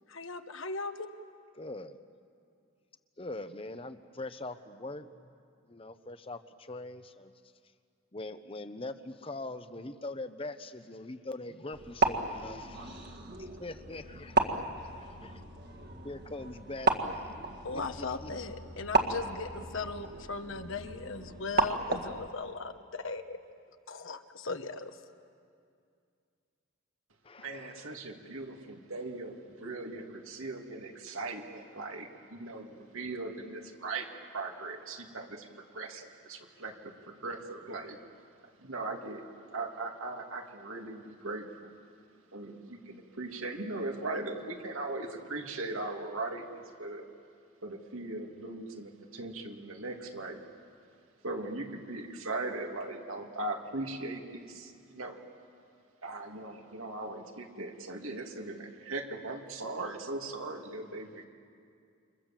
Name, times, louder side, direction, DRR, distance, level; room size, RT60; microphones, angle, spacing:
voice 1, 0.1-1.1 17.6-23.4 23.9-25.0, left 3 dB, 70° left, 8 dB, 1.3 m, -38 dB
voice 2, 1.5-2.0 3.2-5.4 5.7-7.3 8.1-15.4 16.0-17.3 17.7-18.3 27.2-27.9, left 2 dB, 25° left, 10 dB, 0.8 m, -43 dB
sound 1, 11.7-22.3, right 3 dB, 50° right, 1.9 m, -33 dB
voice 3, 27.4-36.9 37.2-38.0 38.6-39.2 39.5-41.7 42.3-47.1 47.6-50.4 51.2-55.2 56.0-61.3, right 2 dB, 85° right, 2 dB, 2.6 m, -39 dB
29.0 x 26.5 x 7.6 m, 2.4 s
head